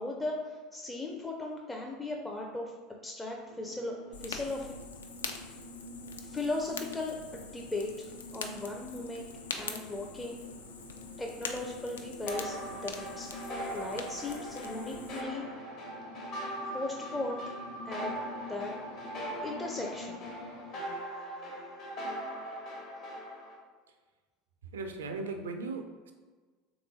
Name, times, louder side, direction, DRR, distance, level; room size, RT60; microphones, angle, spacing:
voice 1, 0.0-2.7 3.0-3.9 4.2-4.7 6.2-9.3 9.6-10.4 11.2-12.6 12.8-13.3 13.7-15.5 16.7-17.4 17.8-18.1 18.5-18.7 19.4-20.3, left 2 dB, 10° left, -1 dB, 0.4 m, -37 dB
sound 1, 3.5-20.7, left 2 dB, 90° left, 0.8 m, -48 dB
Fire, 4.1-15.2, left 5 dB, 70° left, 0.3 m, -44 dB
sound 2, 12.3-23.6, right 1 dB, 50° left, 1.0 m, -40 dB
voice 2, 24.7-26.1, right 3 dB, 70° right, 6 dB, 0.4 m, -37 dB
3.5 x 3.0 x 3.7 m, 1.4 s
figure-of-eight pair, 75°, 0 cm